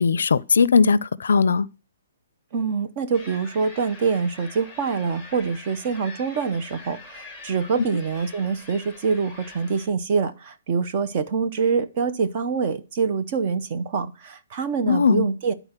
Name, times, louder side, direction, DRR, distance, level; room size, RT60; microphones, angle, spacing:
voice 1, 0.0-1.7 14.9-15.3, left 5 dB, 80° left, 0.4 m, -18 dB
voice 2, 2.5-15.5, right 5 dB, 30° right, 0.6 m, -25 dB
sound 1, 3.1-9.9, left 3 dB, 5° right, 1.4 m, -44 dB
11.0 x 3.9 x 4.4 m
hypercardioid pair, 175°, 0 cm